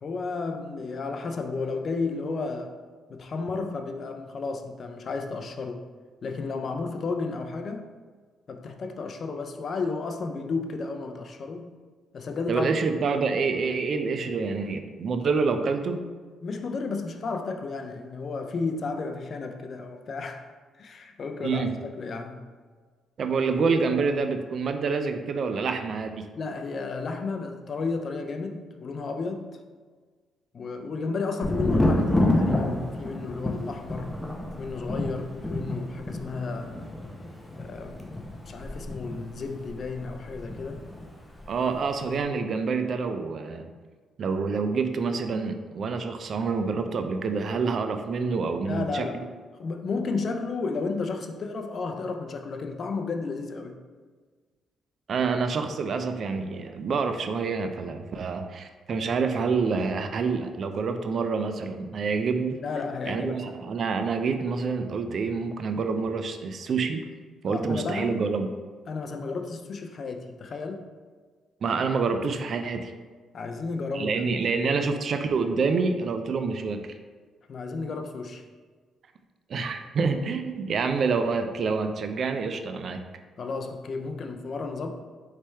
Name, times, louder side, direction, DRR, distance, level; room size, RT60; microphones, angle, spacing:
voice 1, 0.0-2.8 3.1-5.9 6.2-7.9 8.5-11.8 12.1-12.7 16.4-20.5 20.8-21.7 22.0-22.4 26.3-29.6 30.5-34.1 34.6-36.8 37.6-40.8 48.7-49.2 49.6-53.8 62.6-63.5 67.5-68.3 68.9-70.9 73.3-74.2 77.5-78.4 83.4-84.9, left 4 dB, 50° left, 5 dB, 0.4 m, -33 dB
voice 2, 12.5-16.0 21.4-21.7 23.2-26.3 41.5-43.7 44.2-49.1 55.1-62.6 63.1-67.0 67.4-68.5 71.6-72.9 73.9-76.9 79.5-83.0, right 4 dB, 55° right, 7 dB, 0.4 m, -27 dB
Thunder, 31.4-41.1 41.3-42.0, left 1 dB, 10° left, 0.7 m, -29 dB
4.2 x 3.3 x 3.4 m, 1.5 s
cardioid pair, 90°, 0 cm